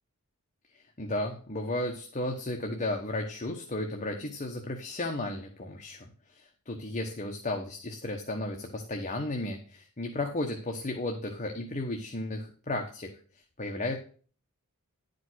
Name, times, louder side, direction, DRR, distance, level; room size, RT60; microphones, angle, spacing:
voice 1, 0.7-13.1 13.6-14.0, left 2 dB, 35° left, 3 dB, 1.2 m, -34 dB
11.5 x 5.2 x 6.2 m, 0.41 s
head